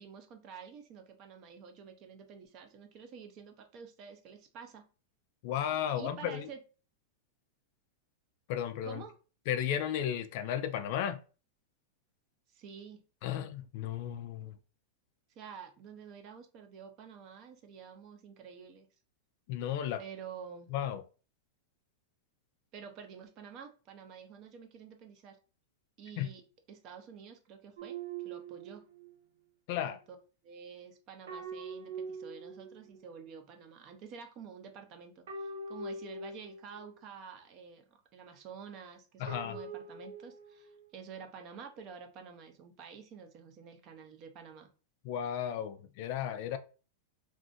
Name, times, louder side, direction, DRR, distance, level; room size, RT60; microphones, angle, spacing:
voice 1, 0.0-4.8 5.9-6.6 8.8-9.2 12.5-13.0 15.4-18.9 20.0-20.7 22.7-25.4 26.0-26.4 26.7-28.0 28.2-28.8 29.8-30.2 30.4-37.8 38.1-44.7, right 6 dB, 30° right, 0.5 m, -49 dB
voice 2, 5.4-6.4 8.5-9.0 9.5-11.2 13.2-14.6 19.5-20.0 20.7-21.0 26.2-26.3 29.7-30.0 39.2-39.6 45.0-46.6, left 10 dB, 45° left, 0.3 m, -34 dB
sound 1, 27.8-29.2 31.3-33.1 35.3-37.0 39.3-40.8, right 3 dB, 90° right, 0.6 m, -43 dB
2.5 x 2.5 x 3.7 m
supercardioid pair, 170°, 0 cm